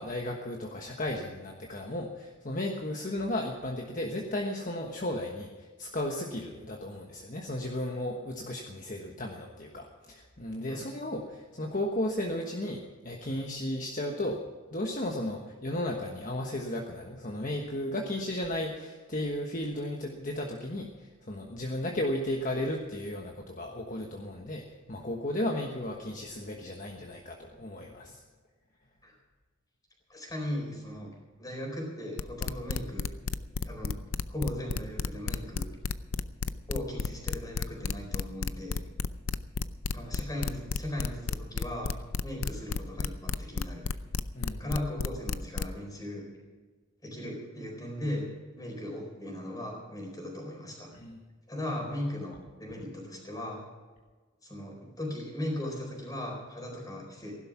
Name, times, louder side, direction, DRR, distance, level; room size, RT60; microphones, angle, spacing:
voice 1, 0.0-14.4 14.7-28.2 44.3-44.7 50.9-51.2, left 1 dB, 40° left, 1 dB, 1.3 m, -34 dB
voice 2, 30.1-31.1 31.4-33.0 33.6-34.0 34.3-35.7 36.7-38.8 39.9-42.0 42.2-43.9 44.6-46.3 47.0-48.3 48.5-50.9 51.5-53.6 54.4-57.4, left 1 dB, 20° left, 1 dB, 4.3 m, -37 dB
sound 1, 32.2-45.7, left 4 dB, 75° left, 0.6 m, -31 dB
16.0 x 12.0 x 6.1 m, 1.4 s
head